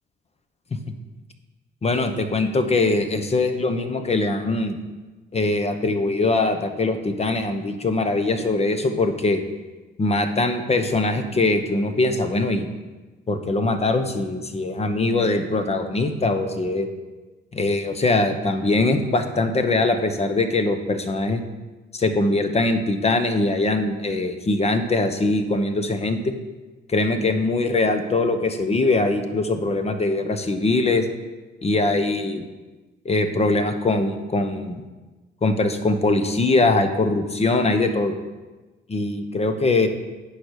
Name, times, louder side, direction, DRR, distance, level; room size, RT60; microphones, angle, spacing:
voice 1, 1.8-4.8 5.3-9.4 10.0-12.7 13.3-16.9 17.5-21.4 21.9-26.3 26.9-31.0 31.6-32.4 33.0-34.8 35.4-38.1 38.9-39.9, left 2 dB, 30° left, 8 dB, 0.9 m, -22 dB
9.4 x 5.0 x 6.4 m, 1.2 s
cardioid pair, 90°, 20 cm